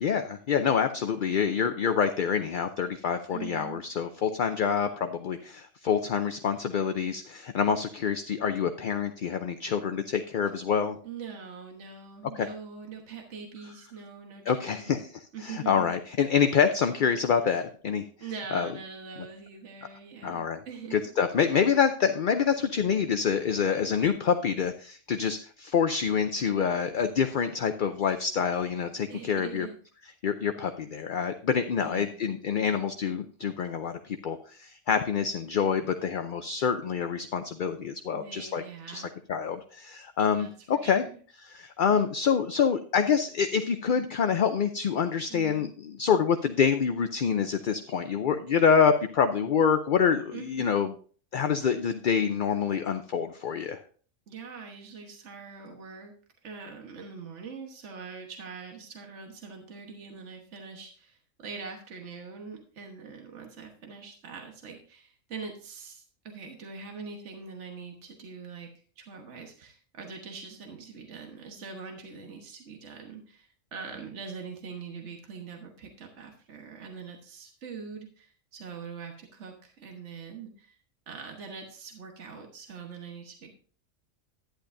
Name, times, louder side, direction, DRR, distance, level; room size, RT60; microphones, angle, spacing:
voice 1, 0.0-11.0 12.3-12.5 14.5-18.0 18.5-18.7 20.2-20.6 20.9-29.7 30.2-41.0 41.4-50.9 51.3-53.8, left 7 dB, 55° left, 8 dB, 0.6 m, -26 dB
voice 2, 3.3-3.8 11.0-15.0 15.3-16.0 18.2-21.1 29.1-29.7 31.8-32.2 38.1-39.2 40.4-41.2 45.3-45.7 50.3-50.7 54.3-56.1 56.4-80.8 81.1-83.5, right 5 dB, 60° right, 2 dB, 1.6 m, -43 dB
11.5 x 10.0 x 2.6 m, 0.43 s
omnidirectional pair, 1.4 m